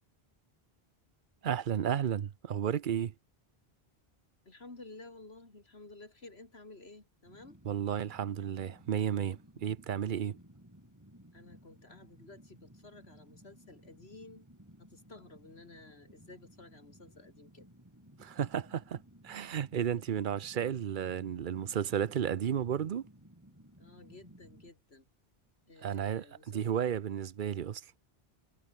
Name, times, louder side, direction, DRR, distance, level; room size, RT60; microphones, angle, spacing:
voice 1, 1.4-3.1 7.6-10.4 18.2-23.0 25.8-27.8, right 9 dB, 55° right, 0.8 m, -33 dB
voice 2, 4.5-7.6 11.3-14.5 14.8-17.7 19.9-20.0 23.8-25.1 25.7-26.9, left 2 dB, 85° left, 3.8 m, -53 dB
Fire, 7.3-24.7, equal, 15° right, 5.9 m, -58 dB
omnidirectional pair, 1.0 m